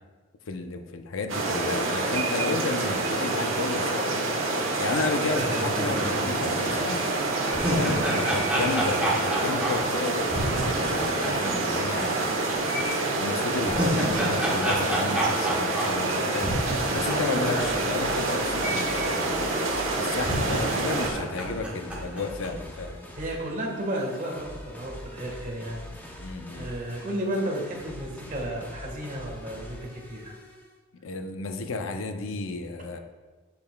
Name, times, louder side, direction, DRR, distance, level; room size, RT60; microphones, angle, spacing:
voice 1, 0.5-4.3 4.8-7.0 7.6-12.2 12.7-16.6 16.9-19.5 19.9-23.0 26.2-26.7 31.0-33.0, left 3 dB, 75° left, 7 dB, 0.5 m, -33 dB
sound 1, 1.3-21.1, right 2 dB, 75° right, 1.2 m, -27 dB
sound 2, 5.2-12.5 12.8-12.9 13.4-18.7 18.9-19.0 19.7-19.8 20.2-22.5, right 1 dB, 5° right, 1.2 m, -30 dB
sound 3, 17.0-30.8, left 1 dB, 10° left, 0.7 m, -43 dB
voice 2, 17.1-17.8 23.2-26.2 26.5-30.3, right 1 dB, 40° right, 0 dB, 1.4 m, -33 dB
7.6 x 6.9 x 2.2 m, 1.3 s
head